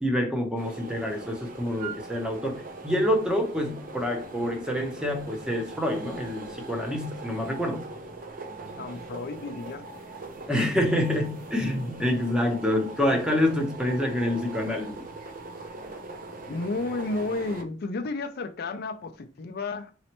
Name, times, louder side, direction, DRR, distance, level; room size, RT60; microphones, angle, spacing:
voice 1, 0.0-7.9 10.5-15.1, left 1 dB, 5° right, 0.7 m, -27 dB
sound 1, 0.6-17.6, right 3 dB, 45° right, 0.6 m, -41 dB
voice 2, 8.8-9.9 16.5-19.9, left 3 dB, 55° left, 0.4 m, -32 dB
4.0 x 3.1 x 2.9 m
head